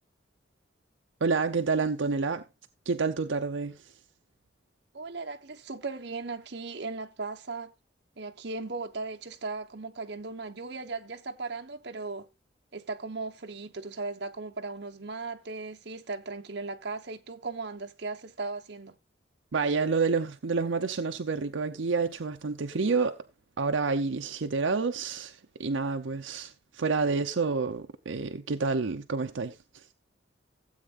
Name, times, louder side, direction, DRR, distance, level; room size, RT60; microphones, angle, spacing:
voice 1, 1.2-2.4 2.9-3.8 19.5-23.2 23.6-29.6, right 4 dB, 80° right, 0.7 m, -28 dB
voice 2, 4.9-7.7 8.2-12.3 12.7-19.0, right 3 dB, 60° right, 1.0 m, -37 dB
16.0 x 8.1 x 2.5 m
head